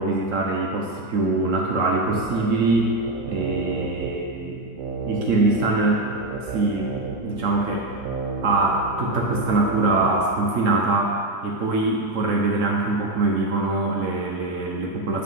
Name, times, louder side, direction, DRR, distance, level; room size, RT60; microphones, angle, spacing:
voice 1, 0.0-3.0 3.3-4.6 5.0-6.0 6.5-6.9 7.2-7.9 8.4-15.2, right 3 dB, 60° right, -1 dB, 0.9 m, -23 dB
sound 1, 2.0-10.2, right 4 dB, 80° right, 1.4 m, -33 dB
8.7 x 3.8 x 5.4 m, 2.4 s
omnidirectional pair, 1.9 m